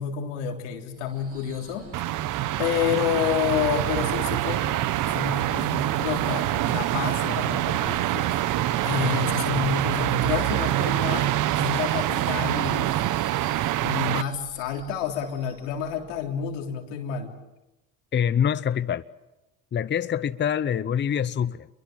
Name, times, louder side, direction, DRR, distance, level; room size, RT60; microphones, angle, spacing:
voice 1, 0.0-1.9 2.6-12.9 13.8-17.3, left 8 dB, 90° left, 3.6 m, -29 dB
Subway metro underground / Screech, 0.9-16.8, right 4 dB, 40° right, 7.6 m, -50 dB
sound 1, 1.9-14.2, right 14 dB, 60° right, 1.0 m, -25 dB
voice 2, 18.1-19.0 19.7-21.7, left 8 dB, 30° left, 0.8 m, -25 dB
26.0 x 22.5 x 7.6 m
supercardioid pair, 80°, 35 cm